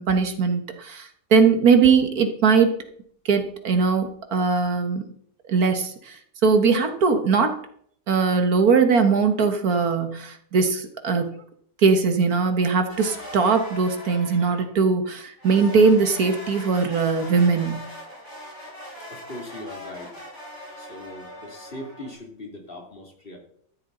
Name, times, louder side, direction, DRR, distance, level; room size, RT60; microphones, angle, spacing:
voice 1, 0.0-2.8 3.3-5.0 5.5-6.2 6.4-7.6 8.1-11.4 11.8-17.9, right 5 dB, 60° right, 6 dB, 1.8 m, -20 dB
sound 1, 12.9-14.8 15.4-22.1, left 1 dB, 15° left, 5.9 m, -40 dB
voice 2, 19.1-20.2 20.8-23.4, left 1 dB, 35° left, 1 dB, 2.8 m, -40 dB
13.5 x 12.5 x 3.9 m, 0.65 s
omnidirectional pair, 1.8 m